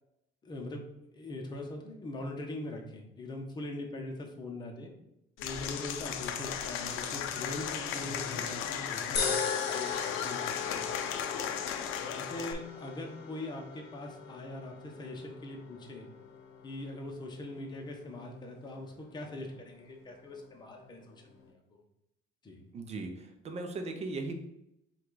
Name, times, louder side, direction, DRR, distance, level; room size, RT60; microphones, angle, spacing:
voice 1, 0.4-0.8 1.1-4.9 5.4-11.3 12.1-16.1 16.6-21.8 22.4-22.7, left 2 dB, 20° left, 2 dB, 0.8 m, -42 dB
Applause / Crowd, 5.4-12.5, left 8 dB, 85° left, 0.5 m, -35 dB
sound 1, 9.2-21.5, left 5 dB, 60° left, 0.9 m, -40 dB
voice 2, 22.7-24.4, right 3 dB, 30° right, 5 dB, 0.6 m, -38 dB
5.8 x 2.4 x 3.9 m, 0.82 s
cardioid pair, 165°, 20 cm